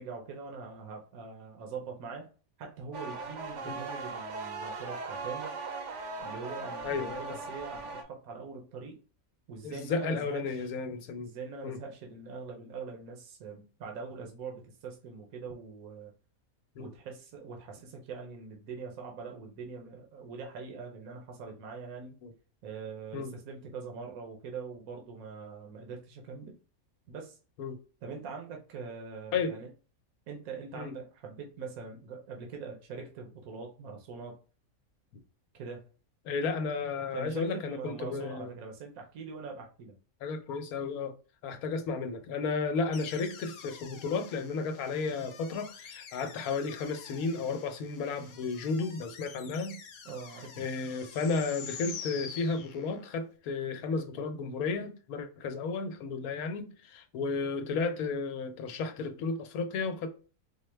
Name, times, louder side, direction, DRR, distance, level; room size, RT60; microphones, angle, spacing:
voice 1, 0.0-2.3 2.6-5.5 6.2-9.0 9.5-10.7 11.2-16.1 16.8-22.2 22.6-26.5 27.1-27.4 28.0-29.7 30.3-34.3 35.6-35.8 37.1-40.0 50.0-50.7, right 5 dB, 80° right, 1.2 m, -43 dB
sound 1, 2.9-8.0, right 3 dB, 65° right, 0.9 m, -39 dB
voice 2, 6.8-7.2 9.6-11.3 11.6-11.8 16.8-16.9 22.2-22.3 23.1-23.3 27.6-27.8 29.3-29.5 30.7-30.9 36.2-38.5 40.2-41.1 41.4-49.8 50.6-60.1, left 4 dB, 90° left, 1.1 m, -33 dB
sound 2, 42.9-53.2, left 6 dB, 65° left, 0.9 m, -47 dB
4.4 x 2.1 x 3.2 m
omnidirectional pair, 1.5 m